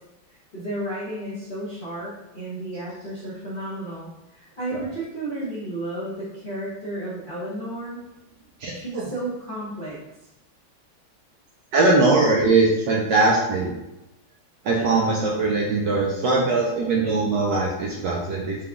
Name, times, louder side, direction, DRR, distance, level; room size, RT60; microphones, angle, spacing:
voice 1, 0.3-8.0 8.7-10.0, right 1 dB, 40° left, -10 dB, 0.7 m, -33 dB
voice 2, 8.6-9.0 11.7-13.7 14.6-18.6, right 3 dB, 70° right, -3 dB, 1.1 m, -21 dB
5.0 x 2.2 x 3.6 m, 0.94 s
omnidirectional pair, 2.4 m